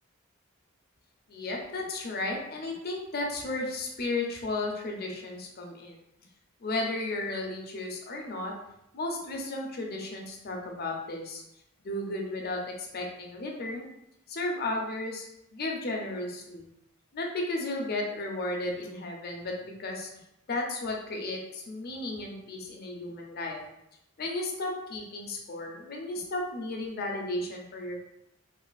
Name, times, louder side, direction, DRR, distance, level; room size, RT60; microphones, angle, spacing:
voice 1, 1.3-6.0 6.6-8.5 8.9-11.4 11.8-13.9 14.3-15.3 15.5-16.7 17.1-20.1 20.5-23.6 24.2-28.0, left 2 dB, 50° left, 1 dB, 0.5 m, -34 dB
3.2 x 2.4 x 2.3 m, 0.83 s
head